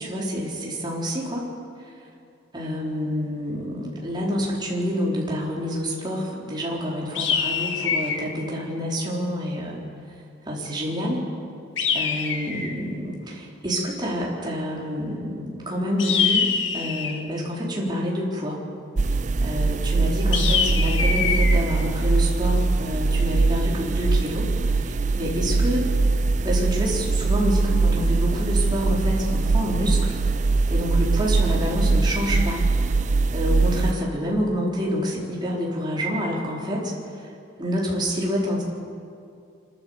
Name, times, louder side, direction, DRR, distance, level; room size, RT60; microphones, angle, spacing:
voice 1, 0.0-1.5 2.5-9.8 10.5-11.2 11.9-18.6 19.4-25.9 26.4-30.1 30.7-32.6 33.3-37.3 37.6-38.6, equal, 25° right, -4 dB, 4.2 m, -27 dB
sound 1, 7.1-8.3 11.8-12.8 16.0-17.3 20.3-21.5, left 6 dB, 80° left, 1.9 m, -24 dB
sound 2, 19.0-33.9, right 3 dB, 40° right, 0.5 m, -22 dB
27.0 x 12.5 x 7.9 m, 2.4 s
head